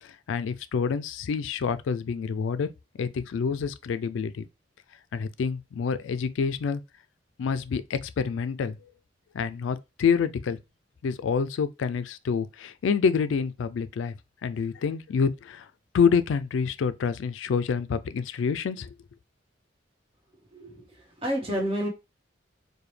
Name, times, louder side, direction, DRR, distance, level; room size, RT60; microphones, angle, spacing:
voice 1, 0.0-2.7 3.0-4.5 5.1-6.8 7.4-8.9 9.3-10.6 11.0-14.1 14.4-15.7 15.9-19.0, left 6 dB, 80° left, 0.3 m, -27 dB
voice 2, 20.5-21.9, equal, 30° right, 1.2 m, -30 dB
4.8 x 2.2 x 3.2 m
head